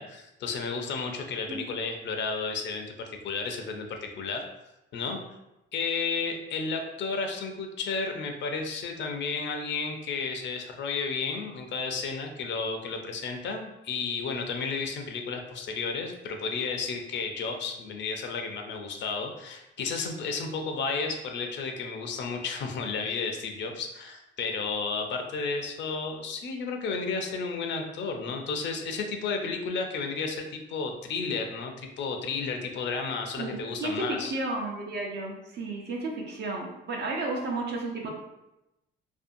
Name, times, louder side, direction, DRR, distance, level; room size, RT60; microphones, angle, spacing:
voice 1, 0.0-4.4 4.9-5.2 5.7-34.3, left 4 dB, 65° left, 4 dB, 0.5 m, -32 dB
voice 2, 33.4-38.1, right 2 dB, 60° right, 0 dB, 0.7 m, -33 dB
2.6 x 2.3 x 2.5 m, 0.93 s
cardioid pair, 90°, 20 cm